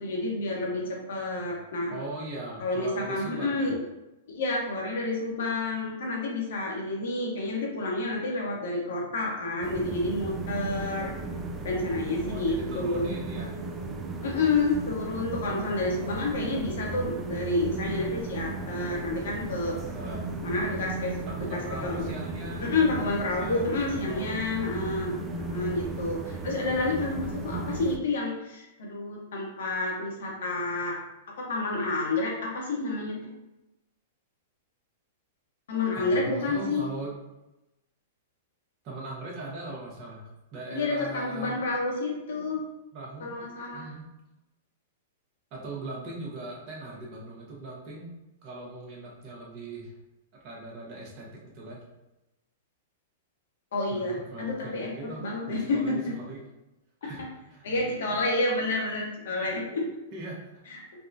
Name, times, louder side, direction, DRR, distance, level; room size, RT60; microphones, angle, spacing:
voice 1, 0.0-1.9 2.6-3.8 4.3-11.1 11.6-13.1 14.2-19.8 20.4-21.2 21.5-22.1 22.6-31.0 31.4-33.2 35.7-36.8 40.7-42.6 43.2-43.9 53.7-54.9 55.2-55.9 57.0-57.1 57.6-59.9 60.7-60.8, left 2 dB, 75° left, -2 dB, 1.0 m, -29 dB
voice 2, 1.9-3.8 12.3-13.5 15.5-15.6 19.9-20.3 21.3-22.7 23.3-24.3 35.7-37.1 38.8-41.6 42.9-43.4 43.7-44.0 45.5-48.1 48.4-49.9 50.4-51.8 53.9-56.4 57.0-57.2 57.5-57.8 60.1-60.4, right 2 dB, 40° right, -3 dB, 1.0 m, -40 dB
sound 1, 9.6-28.0, right 3 dB, 20° right, 0.3 m, -35 dB
3.5 x 2.3 x 2.6 m, 0.97 s
hypercardioid pair, 130°, 0 cm